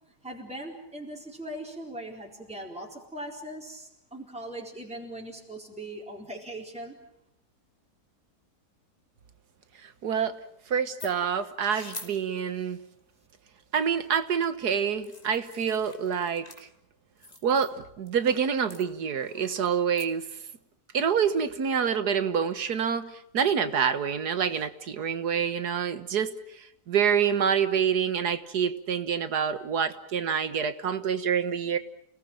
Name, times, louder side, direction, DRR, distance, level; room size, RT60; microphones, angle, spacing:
voice 1, 0.2-7.0, right 1 dB, 5° right, -1 dB, 4.3 m, -40 dB
voice 2, 10.0-10.3 10.7-12.8 13.7-16.4 17.4-20.2 20.9-26.3 26.9-31.8, right 7 dB, 75° right, 11 dB, 1.8 m, -27 dB
sound 1, 11.0-11.1 11.6-12.1 15.0-16.6 17.2-17.7 18.1-18.4 18.7-20.1, left 2 dB, 25° left, 2.8 m, -45 dB
29.0 x 19.0 x 8.9 m, 0.74 s
omnidirectional pair, 1.7 m